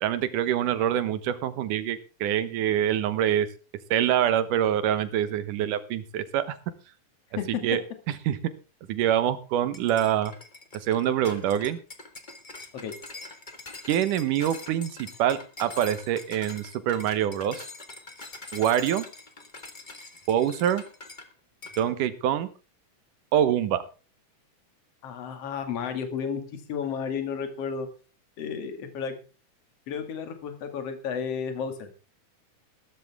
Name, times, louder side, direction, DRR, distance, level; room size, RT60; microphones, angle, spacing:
voice 1, 0.0-3.5 3.9-6.6 7.5-7.8 8.3-8.4 8.9-10.3 10.8-11.8 13.9-17.7 18.5-19.0 20.3-20.8 21.8-22.5 23.3-23.8, right 10 dB, 80° right, 12 dB, 2.7 m, -25 dB
sound 1, 9.7-21.3 21.6-21.9, left 3 dB, 25° left, 1.1 m, -43 dB
voice 2, 25.0-27.9 28.4-29.2 29.9-31.9, left 6 dB, 55° left, 7 dB, 2.9 m, -32 dB
14.5 x 13.5 x 3.6 m, 0.34 s
omnidirectional pair, 3.6 m